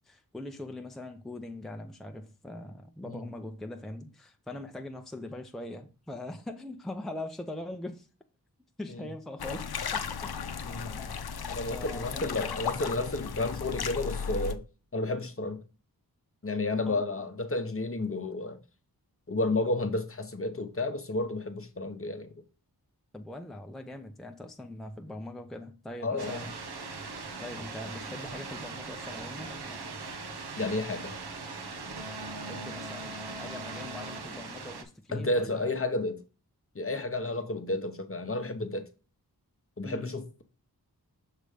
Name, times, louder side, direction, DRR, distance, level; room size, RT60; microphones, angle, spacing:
voice 1, 0.0-8.1 8.8-10.3 10.9-11.0 11.7-12.6 16.9-17.3 23.1-26.5 27.4-29.9 32.4-35.7 37.3-37.5 39.8-40.2, left 1 dB, ahead, 0.6 m, -42 dB
sound 1, 9.4-14.6, left 6 dB, 75° left, 0.6 m, -35 dB
voice 2, 10.6-11.2 11.5-14.6 14.9-15.6 16.4-18.6 19.3-22.3 26.0-26.4 30.6-31.1 35.1-36.2 36.7-38.8 39.8-40.4, left 2 dB, 35° left, 0.9 m, -31 dB
sound 2, 26.2-34.8, right 3 dB, 85° right, 1.0 m, -40 dB
6.6 x 3.2 x 4.9 m
wide cardioid pair, 65°, 38 cm